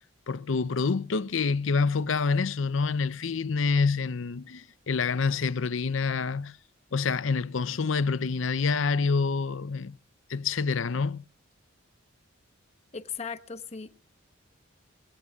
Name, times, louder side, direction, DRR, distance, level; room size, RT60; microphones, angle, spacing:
voice 1, 0.3-6.6 6.9-10.0 10.3-11.2, left 4 dB, 70° left, 0.6 m, -27 dB
voice 2, 12.9-13.9, left 6 dB, 35° left, 1.0 m, -37 dB
22.0 x 17.5 x 2.4 m
head